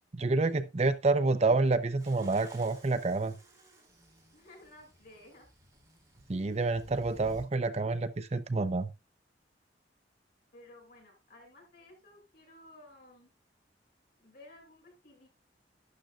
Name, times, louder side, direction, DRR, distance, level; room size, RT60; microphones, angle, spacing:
voice 1, 0.1-3.3 6.3-8.9, right 3 dB, 35° right, 0.6 m, -28 dB
sound 1, 1.9-7.5, right 1 dB, 15° right, 4.6 m, -55 dB
voice 2, 4.3-5.5 10.5-13.3 14.2-15.3, left 1 dB, 60° left, 6.8 m, -55 dB
12.0 x 10.5 x 2.4 m
head